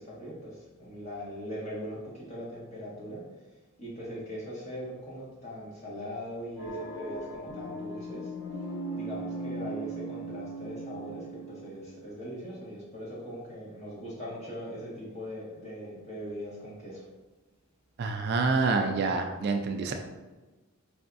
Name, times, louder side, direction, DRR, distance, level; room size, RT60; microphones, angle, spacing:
voice 1, 0.0-3.2 3.8-8.6 8.9-17.0, equal, 30° left, -6 dB, 1.4 m, -40 dB
sound 1, 6.6-12.0, right 2 dB, 70° left, 1.2 m, -38 dB
voice 2, 18.0-19.9, right 4 dB, 50° right, 5 dB, 0.3 m, -27 dB
4.7 x 3.4 x 2.5 m, 1.2 s
head